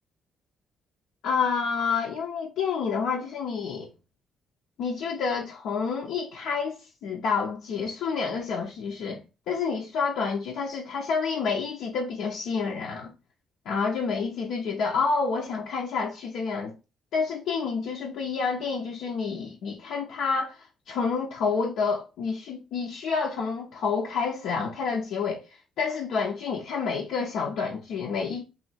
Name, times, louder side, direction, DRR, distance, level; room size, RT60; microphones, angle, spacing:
voice 1, 1.2-3.9 4.8-9.2 9.5-13.1 13.7-16.7 17.1-25.4 25.8-28.4, left 5 dB, 85° left, 0.7 m, -29 dB
3.1 x 2.7 x 4.1 m
cardioid pair, 90°, 0 cm